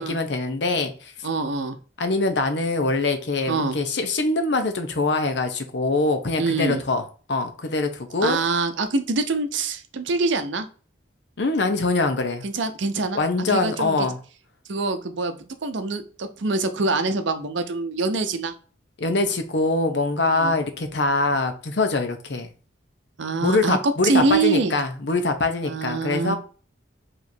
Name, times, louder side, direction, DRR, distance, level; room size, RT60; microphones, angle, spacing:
voice 1, 0.0-1.1 2.0-7.0 7.3-8.4 11.4-12.4 13.1-14.2 19.0-22.5 23.4-26.4, left 3 dB, 65° left, 7 dB, 0.7 m, -23 dB
voice 2, 1.2-1.8 3.5-3.8 6.4-6.8 8.2-10.7 12.4-13.2 13.5-14.1 14.7-18.5 20.3-20.5 23.2-23.8 24.0-24.8 25.6-26.4, right 3 dB, 75° right, 8 dB, 0.6 m, -25 dB
5.0 x 3.0 x 2.7 m, 0.38 s
head